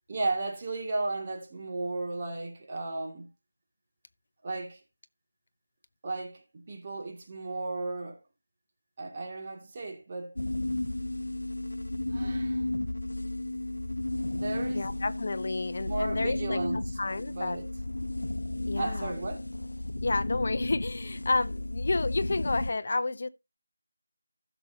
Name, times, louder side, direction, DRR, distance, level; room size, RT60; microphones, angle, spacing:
voice 1, 0.1-3.3 4.4-4.8 6.0-8.2 9.0-10.4 12.1-12.7 14.3-14.8 15.8-16.8 17.3-17.7 18.8-19.5, right 2 dB, 25° right, 2.3 m, -35 dB
sound 1, 10.4-22.7, left 1 dB, 85° left, 0.7 m, -33 dB
voice 2, 14.7-17.6 18.6-19.1 20.0-23.3, left 3 dB, 45° left, 0.7 m, -31 dB
15.5 x 6.8 x 2.8 m
figure-of-eight pair, 170°, 0 cm